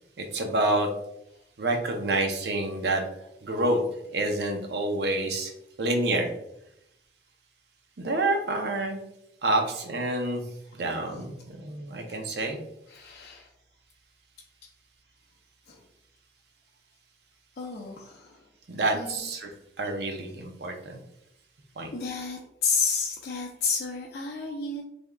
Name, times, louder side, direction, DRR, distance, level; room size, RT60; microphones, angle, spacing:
voice 1, 0.2-0.9 1.6-3.0 3.4-3.8 4.1-5.5 5.8-6.3 8.0-9.0 9.4-10.4 10.7-12.6 18.7-19.5 19.8-21.0 21.8-21.9, right 2 dB, 70° right, 3 dB, 0.6 m, -28 dB
voice 2, 12.9-13.5 15.7-15.8 17.6-18.4 18.9-19.2 21.9-24.8, left 5 dB, 60° left, -3 dB, 0.5 m, -31 dB
3.6 x 3.4 x 2.2 m, 0.80 s
head